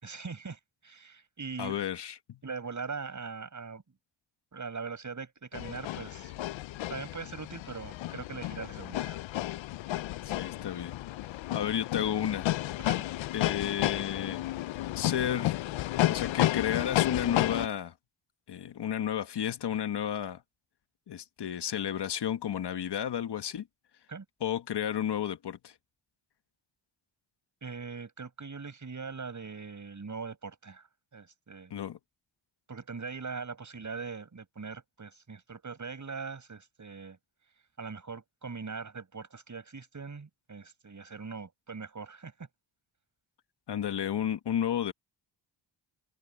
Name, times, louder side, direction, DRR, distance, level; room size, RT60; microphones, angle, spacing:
voice 1, 0.0-1.8 2.4-3.8 4.5-6.3 6.9-9.2 12.8-13.0 24.1-24.2 27.6-30.8 31.1-31.7 32.7-37.2 37.8-42.5, right 5 dB, 40° right, 6.0 m, -41 dB
voice 2, 1.6-2.4 10.2-11.0 11.5-12.5 13.3-14.4 14.9-15.6 16.1-17.9 18.5-20.4 21.1-23.7 24.4-25.7 31.7-32.0 43.7-44.9, left 9 dB, 60° left, 1.5 m, -32 dB
sound 1, 5.5-17.7, left 15 dB, 85° left, 0.6 m, -32 dB
cardioid pair, 70°, 45 cm